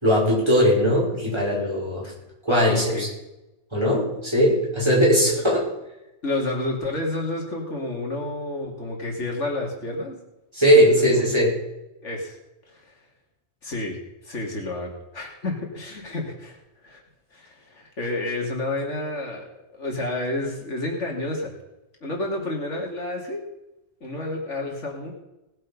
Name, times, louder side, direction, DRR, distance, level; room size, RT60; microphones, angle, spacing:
voice 1, 0.0-2.1 2.4-3.1 3.7-5.6 10.5-11.5, equal, 25° right, -5 dB, 5.6 m, -19 dB
voice 2, 2.5-3.1 5.4-5.5 6.2-10.2 10.7-11.3 12.0-12.4 12.7-12.8 13.6-17.0 17.3-21.6 22.0-23.4 24.0-25.1, left 2 dB, 85° left, 0 dB, 3.2 m, -30 dB
19.5 x 7.7 x 5.4 m, 0.95 s
omnidirectional pair, 1.2 m